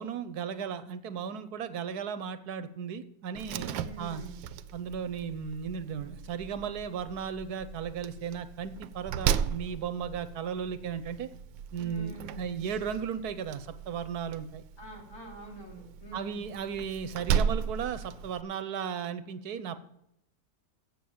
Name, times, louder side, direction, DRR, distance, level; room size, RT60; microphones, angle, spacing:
voice 1, 0.0-4.2 4.7-11.3 11.7-14.6 16.1-19.8, right 7 dB, 65° right, 12 dB, 1.1 m, -35 dB
Slam, 3.3-18.4, right 8 dB, 80° right, 1.3 m, -36 dB
voice 2, 3.5-4.4 11.8-12.7 14.8-16.4, right 2 dB, 50° left, -2 dB, 3.9 m, -46 dB
7.8 x 7.7 x 8.5 m, 0.78 s
omnidirectional pair, 2.0 m